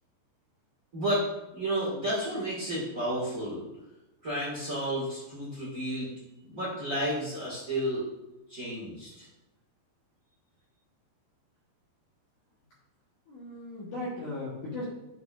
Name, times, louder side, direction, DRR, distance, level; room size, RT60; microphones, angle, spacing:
voice 1, 0.9-1.2 1.5-3.6 4.2-6.1 6.5-8.0 8.5-9.3, right 1 dB, 60° right, -7 dB, 0.8 m, -31 dB
voice 2, 13.3-14.8, left 2 dB, 60° left, -8 dB, 2.2 m, -37 dB
9.3 x 5.8 x 2.6 m, 0.96 s
omnidirectional pair, 5.2 m